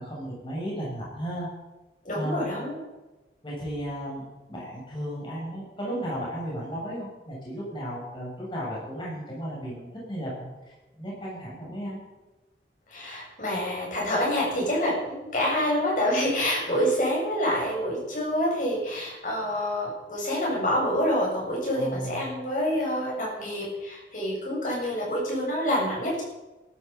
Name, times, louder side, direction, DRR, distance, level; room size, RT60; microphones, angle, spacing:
voice 1, 0.0-1.5 2.1-2.5 3.4-12.0 21.7-22.2, equal, 25° left, -5 dB, 7.2 m, -34 dB
voice 2, 2.0-2.8 12.9-26.2, equal, 45° left, -3 dB, 7.6 m, -27 dB
19.5 x 13.0 x 5.6 m, 1.1 s
head